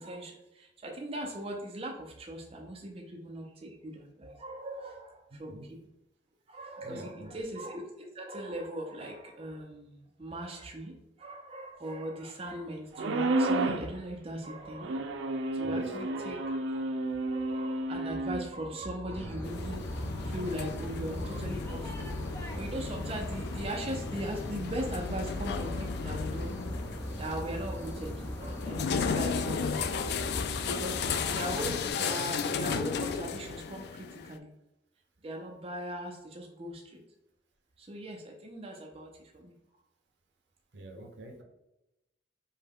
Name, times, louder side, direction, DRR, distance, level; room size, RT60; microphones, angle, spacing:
voice 1, 0.0-5.8 6.5-16.9 17.3-22.1 22.4-26.6 27.2-30.0 30.7-34.5 35.2-37.0 37.8-39.5, right 1 dB, 30° right, 0 dB, 0.5 m, -39 dB
voice 2, 6.8-7.4 15.6-15.8 29.1-29.3 29.8-29.9 40.7-41.4, right 1 dB, 70° right, 2 dB, 0.8 m, -45 dB
sound 1, 13.0-13.9 14.8-18.5, right 2 dB, 90° right, 0.4 m, -31 dB
sound 2, 19.1-31.9, equal, 15° left, 0.6 m, -39 dB
sound 3, 19.4-34.4, left 6 dB, 60° left, 0.3 m, -35 dB
5.4 x 2.2 x 3.5 m, 0.90 s
head